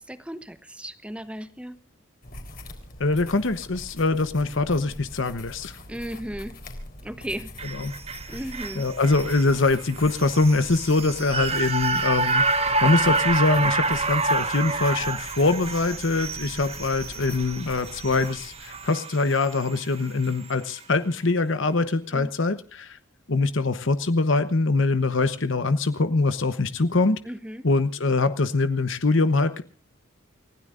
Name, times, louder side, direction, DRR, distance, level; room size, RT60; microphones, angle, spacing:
voice 1, 0.0-1.8 5.9-6.6 7.0-7.5 8.3-8.9 22.1-22.3 27.2-27.7, equal, 5° right, 12 dB, 1.0 m, -35 dB
sound 1, 2.2-18.9, left 1 dB, 45° left, 3.9 m, -43 dB
voice 2, 3.0-5.8 7.7-7.9 8.8-23.0 23.3-27.2 27.6-29.6, left 3 dB, 65° left, 11 dB, 1.0 m, -23 dB
sound 2, 7.6-19.9 20.3-20.4, right 3 dB, 30° right, 1.4 m, -28 dB
29.5 x 16.0 x 2.5 m, 0.38 s
head